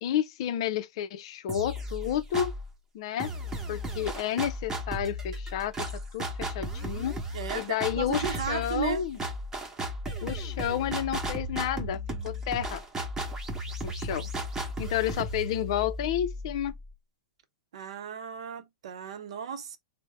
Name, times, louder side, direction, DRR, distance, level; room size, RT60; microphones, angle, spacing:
voice 1, 0.0-2.6 2.9-3.3 3.7-7.2 7.5-9.2 10.2-12.8 13.8-14.3 14.8-16.7, left 10 dB, 55° left, 0.4 m, -31 dB
sound 1, 1.5-2.7 3.2-16.9, equal, 15° right, 1.0 m, -35 dB
voice 2, 7.3-9.0 17.7-19.8, right 7 dB, 70° right, 0.7 m, -35 dB
3.3 x 2.0 x 3.2 m
hypercardioid pair, 115°, 3 cm